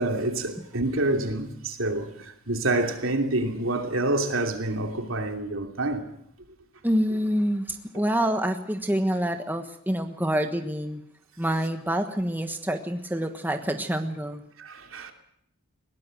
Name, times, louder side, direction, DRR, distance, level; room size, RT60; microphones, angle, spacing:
voice 1, 0.0-6.1 14.6-15.1, right 2 dB, 70° right, 2.9 m, -27 dB
voice 2, 6.8-11.0 11.4-14.4, equal, 10° right, 1.3 m, -27 dB
21.5 x 18.0 x 7.8 m
head